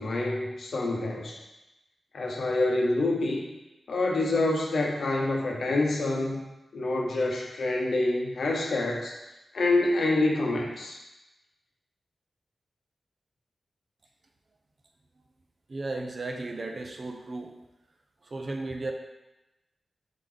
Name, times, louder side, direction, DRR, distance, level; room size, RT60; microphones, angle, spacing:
voice 1, 0.0-1.4 2.1-3.4 3.9-6.4 6.7-9.1 9.5-11.0, left 2 dB, 70° left, 0 dB, 0.8 m, -27 dB
voice 2, 15.7-17.5 18.2-18.9, right 2 dB, 50° right, 3 dB, 0.5 m, -35 dB
3.7 x 3.3 x 3.8 m, 0.99 s
cardioid pair, 70°, 0 cm